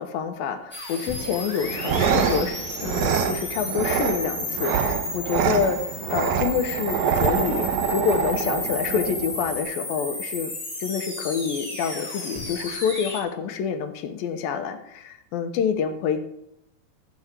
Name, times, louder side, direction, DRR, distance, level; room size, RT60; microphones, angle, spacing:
voice 1, 0.0-5.8 6.1-10.5 10.8-16.3, left 7 dB, 75° left, 7 dB, 2.7 m, -27 dB
sound 1, 0.7-13.2, left 1 dB, 5° left, 3.1 m, -33 dB
Soft Growling Creature Laugh, 1.6-9.6, right 7 dB, 80° right, 1.7 m, -26 dB
13.5 x 4.7 x 7.3 m, 0.79 s
omnidirectional pair, 4.3 m